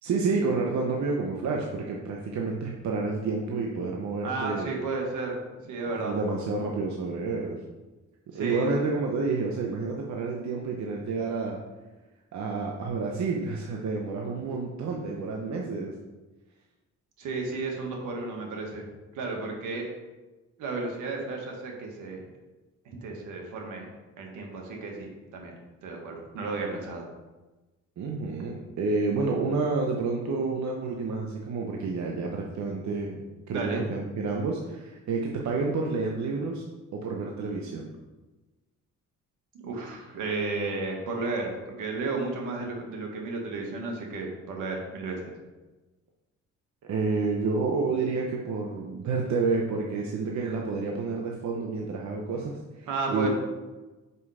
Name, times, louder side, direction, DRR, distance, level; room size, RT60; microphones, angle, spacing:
voice 1, 0.0-4.7 5.9-7.6 8.3-11.6 12.3-15.9 28.0-33.2 33.5-36.6 36.9-37.9 46.8-53.3, right 4 dB, 65° right, 0 dB, 1.0 m, -29 dB
voice 2, 4.2-5.4 5.7-6.2 8.3-8.7 17.2-18.9 19.1-19.9 20.6-22.2 23.0-23.9 24.2-27.0 33.5-33.8 39.5-45.3 52.9-53.3, right 3 dB, 85° right, 1 dB, 1.7 m, -33 dB
5.6 x 5.4 x 4.9 m, 1.2 s
cardioid pair, 90°, 30 cm